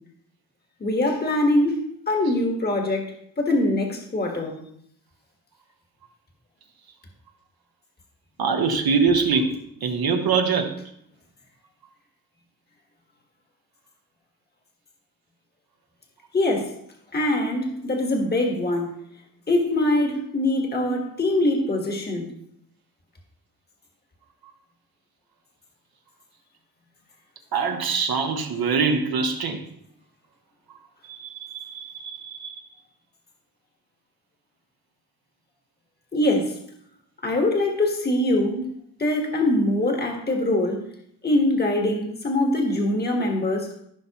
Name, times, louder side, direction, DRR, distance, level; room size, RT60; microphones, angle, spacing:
voice 1, 0.8-3.1 3.4-4.6 16.3-16.7 17.1-18.9 19.5-22.3 36.1-36.5 37.2-38.6 39.0-40.8 41.2-43.7, left 1 dB, 25° left, 2 dB, 1.5 m, -23 dB
voice 2, 8.4-10.7 20.7-20.9 27.5-29.6 31.0-32.6 38.5-38.6, right 5 dB, 80° right, 3 dB, 1.2 m, -24 dB
15.0 x 5.8 x 2.9 m, 0.70 s
wide cardioid pair, 130°, 36 cm